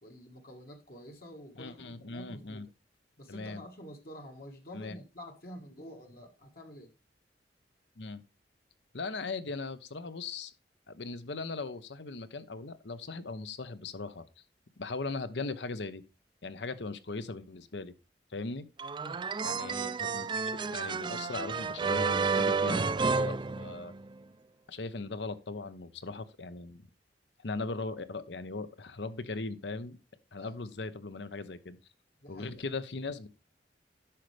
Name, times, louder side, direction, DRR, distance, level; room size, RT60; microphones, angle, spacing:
voice 1, 0.0-2.7 3.2-6.9 19.0-19.2 20.6-20.7 30.4-30.6 32.2-32.7, equal, 55° left, 1.6 m, -48 dB
voice 2, 1.6-2.7 3.3-3.6 4.7-5.0 8.0-8.2 8.9-10.5 10.9-14.2 14.8-16.0 16.4-17.9 18.3-18.6 19.4-23.9 24.7-26.8 27.4-30.0 30.3-31.8 32.3-33.3, left 3 dB, 75° left, 0.9 m, -39 dB
sound 1, 18.8-24.2, right 4 dB, 25° right, 0.3 m, -31 dB
10.0 x 6.4 x 3.3 m
head